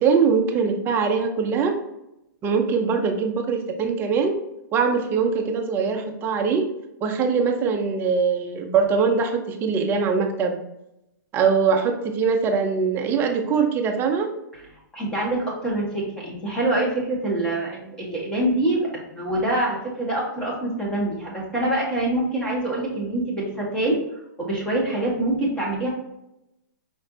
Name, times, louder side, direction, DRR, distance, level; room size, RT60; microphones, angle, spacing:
voice 1, 0.0-1.7 2.4-4.3 4.7-6.7 7.0-10.6 11.3-14.3, right 5 dB, 20° right, 4 dB, 0.6 m, -22 dB
voice 2, 14.9-18.8 19.1-24.0 24.4-25.9, right 1 dB, 10° left, -4 dB, 1.4 m, -25 dB
5.0 x 3.2 x 2.8 m, 0.86 s
hypercardioid pair, 145°, 11 cm